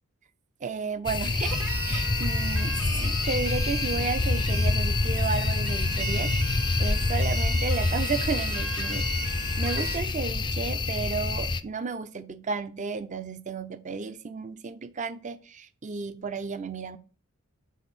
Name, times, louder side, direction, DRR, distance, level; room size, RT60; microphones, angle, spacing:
voice 1, 0.6-17.0, right 4 dB, 35° right, 12 dB, 0.5 m, -33 dB
sound 1, 1.1-11.6, left 3 dB, 20° left, 0.4 m, -27 dB
sound 2, 1.4-10.0, right 5 dB, 70° right, 1.1 m, -37 dB
7.1 x 3.9 x 5.9 m, 0.38 s
head